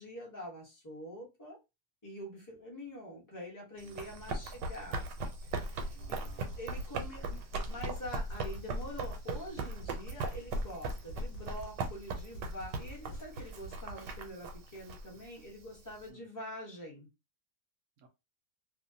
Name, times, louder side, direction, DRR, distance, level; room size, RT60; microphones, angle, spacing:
voice 1, 0.0-1.6 2.0-5.1 5.4-6.2 6.6-7.3 7.7-17.1, equal, 20° left, -2 dB, 0.5 m, -45 dB
voice 2, 3.8-4.4 5.9-6.6 7.2-7.4 16.1-16.2 18.0-18.1, right 4 dB, 65° right, 5 dB, 0.8 m, -60 dB
Run, 3.8-16.1, right 2 dB, 85° right, 1.2 m, -39 dB
sound 1, 5.7-14.2, right 3 dB, 70° left, 1.0 m, -49 dB
2.8 x 2.0 x 2.6 m, 0.25 s
omnidirectional pair, 1.8 m